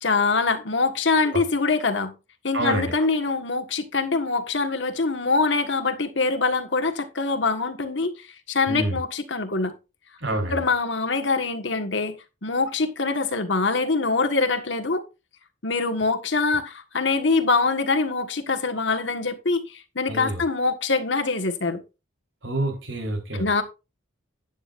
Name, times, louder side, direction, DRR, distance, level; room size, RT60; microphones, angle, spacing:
voice 1, 0.0-2.1 2.4-8.2 8.5-9.7 10.5-12.1 12.4-15.0 15.6-21.8 23.3-23.6, left 3 dB, 70° left, 1.6 m, -24 dB
voice 2, 2.5-2.9 8.7-9.0 10.2-10.6 20.1-20.4 22.4-23.6, right 1 dB, 80° right, 4.0 m, -27 dB
12.0 x 9.3 x 2.6 m
head